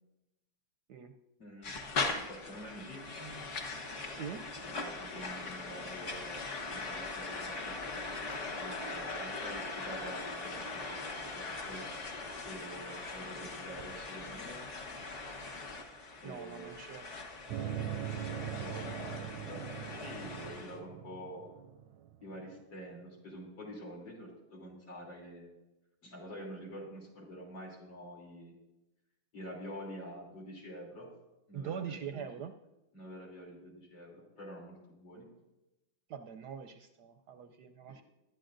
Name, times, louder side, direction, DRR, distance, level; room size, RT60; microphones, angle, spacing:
voice 1, 1.4-1.7 2.1-3.4 4.6-6.5 6.7-8.0 8.6-11.9 12.4-14.7 16.2-16.7 18.1-19.6 19.9-21.5 22.2-25.5 26.0-28.5 29.3-31.1 31.5-32.3 32.9-35.3 37.9-38.0, equal, 70° left, -2 dB, 4.0 m, -47 dB
sound 1, 1.6-20.8, left 3 dB, 40° left, 1.5 m, -40 dB
voice 2, 4.1-4.5 16.2-17.0 31.5-32.5 36.1-38.0, right 7 dB, 70° right, 7 dB, 1.0 m, -43 dB
sound 2, 17.5-22.4, right 10 dB, 90° right, 1.4 m, -41 dB
19.0 x 12.0 x 2.6 m, 0.98 s
omnidirectional pair, 2.1 m